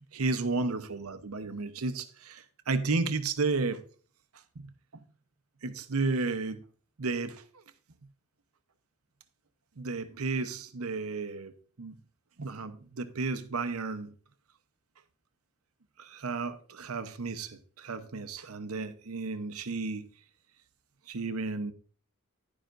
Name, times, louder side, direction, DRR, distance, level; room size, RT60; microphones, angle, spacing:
voice 1, 0.1-3.8 5.6-6.6 7.0-7.6 9.8-12.0 12.4-14.1 16.0-20.1 21.1-21.7, right 3 dB, 75° right, 0.8 m, -33 dB
10.5 x 9.9 x 2.5 m
head